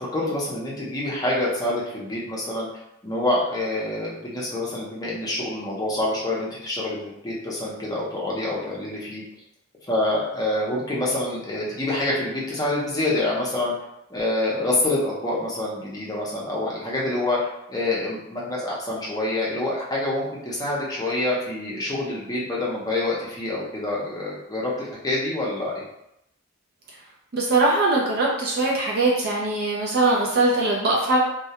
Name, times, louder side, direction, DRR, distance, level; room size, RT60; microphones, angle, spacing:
voice 1, 0.0-2.7 3.0-9.2 9.9-13.7 14.1-17.4 17.7-25.8, left 2 dB, 15° left, -5 dB, 0.6 m, -26 dB
voice 2, 27.3-31.2, right 2 dB, 45° right, -3 dB, 0.4 m, -21 dB
2.2 x 2.1 x 2.8 m, 0.80 s
head